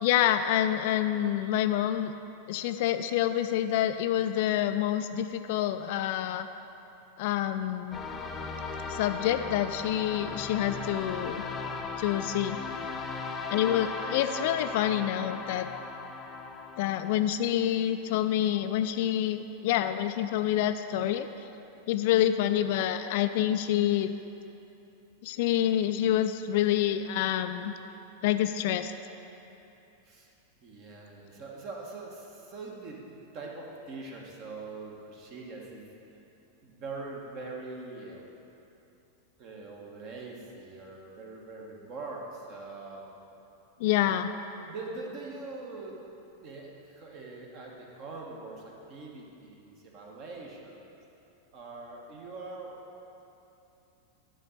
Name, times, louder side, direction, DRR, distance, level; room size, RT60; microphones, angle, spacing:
voice 1, 0.0-2.1 2.5-6.5 7.2-8.0 8.9-11.4 12.0-12.6 13.5-15.7 16.8-21.3 21.9-24.1 25.2-27.7 28.2-28.9 43.8-44.3, left 11 dB, 50° left, 9 dB, 0.3 m, -27 dB
sound 1, 7.9-17.2, left 4 dB, 20° left, 0.7 m, -37 dB
voice 2, 30.6-35.9 36.6-38.2 39.4-43.1 44.6-46.0 46.4-51.0 51.5-52.7, right 3 dB, 40° right, -1 dB, 1.4 m, -43 dB
11.5 x 3.9 x 6.5 m, 2.9 s
figure-of-eight pair, 90°, 0 cm